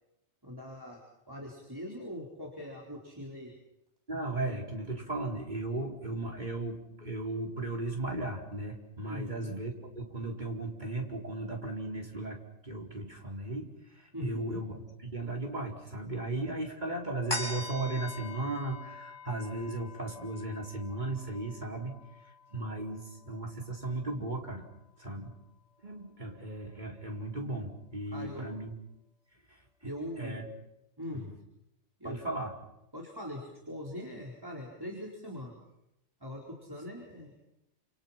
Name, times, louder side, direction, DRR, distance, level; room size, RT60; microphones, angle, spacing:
voice 1, 0.4-1.0 1.3-3.5 9.1-9.6 14.1-14.6 28.1-28.5 29.8-30.4 31.0-31.2 32.0-32.2 32.9-33.4 33.7-35.6 36.2-37.4, left 1 dB, 20° right, -2 dB, 4.5 m, -41 dB
voice 2, 4.1-22.0 22.5-24.6 25.0-25.3 25.8-28.7 30.2-30.5 31.1-31.3 32.0-32.5, right 2 dB, 40° right, 0 dB, 4.5 m, -36 dB
sound 1, 17.3-24.1 24.5-24.6, left 2 dB, 40° left, 6.1 m, -43 dB
29.0 x 28.0 x 6.0 m, 0.86 s
omnidirectional pair, 1.2 m